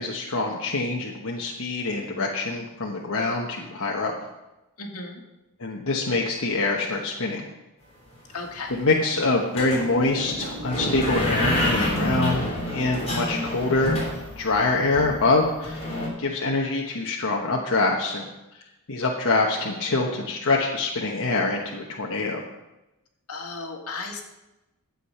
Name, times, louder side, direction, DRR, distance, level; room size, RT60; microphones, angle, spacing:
voice 1, 0.0-4.1 5.6-7.4 8.7-14.0 14.4-15.8 16.2-18.3 18.9-22.4, left 3 dB, 65° left, -1 dB, 1.1 m, -25 dB
voice 2, 4.8-5.2 8.3-8.8 23.3-24.2, left 3 dB, 80° left, 2 dB, 2.0 m, -35 dB
sound 1, 8.1-8.2 8.4-8.8 9.6-16.1, left 1 dB, 30° left, 3.3 m, -28 dB
12.0 x 8.1 x 5.7 m, 0.99 s
head